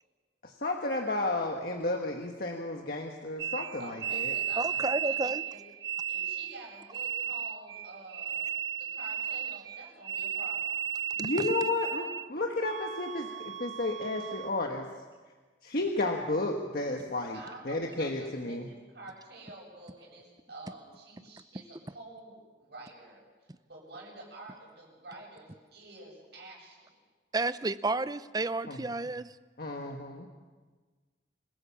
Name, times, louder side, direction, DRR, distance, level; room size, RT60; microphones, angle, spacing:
voice 1, 0.4-4.3 11.2-14.8 15.6-17.4 17.6-18.7 28.7-28.8 29.6-30.3, left 2 dB, 55° left, 2 dB, 1.6 m, -32 dB
sound 1, 3.4-12.3 12.6-14.5, right 9 dB, 85° right, 0.8 m, -35 dB
voice 2, 3.8-5.6 6.1-10.7 17.3-26.9, right 2 dB, 65° right, -2 dB, 8.0 m, -49 dB
voice 3, 4.6-5.4 11.2-11.5 27.3-29.3, right 2 dB, 20° right, 14 dB, 0.6 m, -31 dB
27.0 x 16.0 x 7.2 m, 1.4 s
head